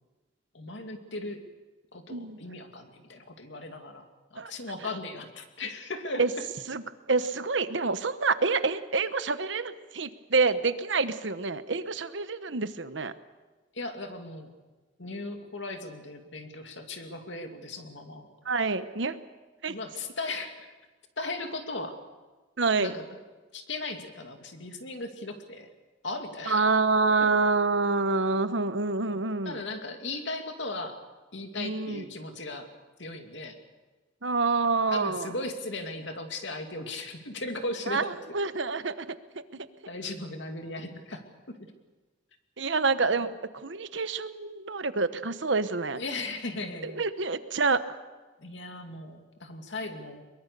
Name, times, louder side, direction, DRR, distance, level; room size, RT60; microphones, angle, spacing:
voice 1, 0.5-1.4 1.9-6.5 13.7-14.5 15.0-18.3 19.7-20.7 21.2-22.0 22.8-23.2 23.5-25.7 26.0-26.7 29.1-31.0 31.3-32.7 33.0-33.6 34.9-38.2 39.9-41.7 43.2-43.3 46.0-47.0 48.4-50.2, left 2 dB, 75° left, 5 dB, 2.5 m, -37 dB
voice 2, 7.1-13.1 18.4-19.2 19.6-19.8 22.6-22.9 26.5-29.6 31.6-32.0 34.2-35.3 37.9-38.1 38.3-39.1 39.3-39.7 42.6-43.3 43.6-46.0 46.8-47.8, right 4 dB, 80° right, 12 dB, 1.1 m, -27 dB
22.5 x 22.5 x 6.8 m, 1.3 s
head